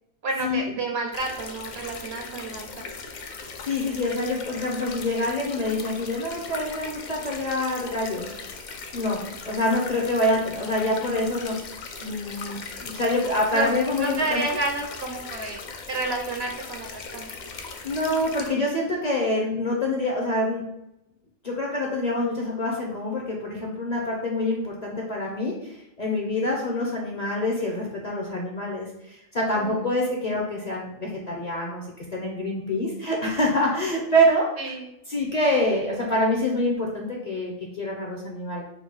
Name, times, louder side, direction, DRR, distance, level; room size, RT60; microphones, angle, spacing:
voice 1, 0.2-2.8 13.2-13.7 14.0-17.3 29.5-29.9 30.2-30.4 34.6-34.9, right 2 dB, 60° right, 2 dB, 0.8 m, -30 dB
sound 1, 1.1-18.5, left 4 dB, 75° left, 0.4 m, -39 dB
voice 2, 3.6-8.4 8.9-11.6 12.0-14.4 17.8-20.7 21.4-31.9 32.1-34.7 35.1-38.6, left 1 dB, 40° left, -1 dB, 0.7 m, -26 dB
4.5 x 2.3 x 4.4 m, 0.81 s
omnidirectional pair, 1.4 m